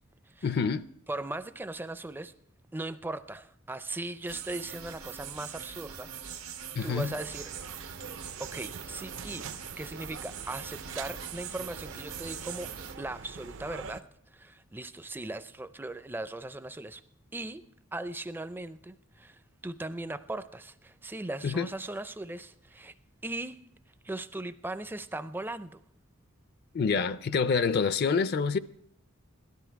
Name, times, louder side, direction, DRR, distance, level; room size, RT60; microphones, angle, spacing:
voice 1, 0.4-0.9 6.8-7.1 21.4-21.7 26.7-28.6, left 5 dB, 50° left, 0.4 m, -27 dB
voice 2, 1.1-2.3 2.7-6.5 6.8-7.5 8.4-9.5 9.8-12.7 13.0-14.1 14.3-17.0 17.3-17.6 17.9-22.9 23.2-23.6 24.0-25.8, right 2 dB, 10° right, 0.4 m, -38 dB
sound 1, 4.3-13.0, right 8 dB, 90° right, 1.2 m, -43 dB
sound 2, 6.8-14.0, right 5 dB, 60° right, 0.6 m, -45 dB
17.0 x 12.5 x 4.6 m
head